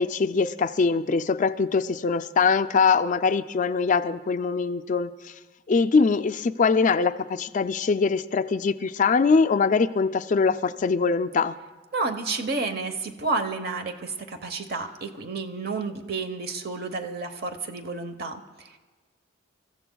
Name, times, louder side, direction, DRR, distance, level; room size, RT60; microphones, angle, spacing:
voice 1, 0.0-5.1 5.7-11.6, left 5 dB, 40° left, 11 dB, 0.4 m, -22 dB
voice 2, 11.9-18.8, right 3 dB, 55° right, 7 dB, 1.0 m, -31 dB
29.0 x 14.5 x 2.3 m, 1.4 s
head